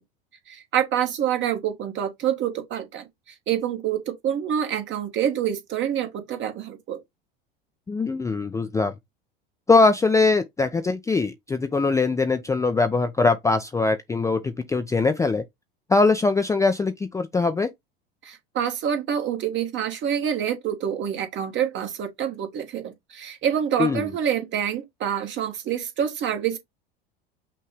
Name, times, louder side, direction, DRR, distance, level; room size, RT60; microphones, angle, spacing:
voice 1, 0.5-3.1 3.5-7.0 18.2-26.6, right 9 dB, 40° right, 1.4 m, -27 dB
voice 2, 7.9-8.9 9.7-15.4 15.9-17.7 23.8-24.1, left 3 dB, 10° left, 0.4 m, -22 dB
5.8 x 2.2 x 3.3 m
hypercardioid pair, 80°, 29 cm